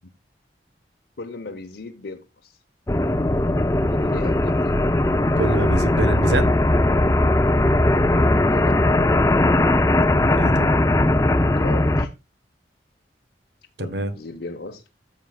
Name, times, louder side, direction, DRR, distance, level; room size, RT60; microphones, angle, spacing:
voice 1, 1.2-2.6 3.9-4.8 8.5-8.9 11.5-12.1 13.8-14.8, left 3 dB, 75° left, 1.0 m, -36 dB
sound 1, 2.9-12.1, left 1 dB, 15° left, 0.5 m, -19 dB
voice 2, 5.3-6.5 10.1-10.7 13.8-14.1, right 2 dB, 75° right, 1.2 m, -26 dB
13.5 x 7.1 x 2.4 m
head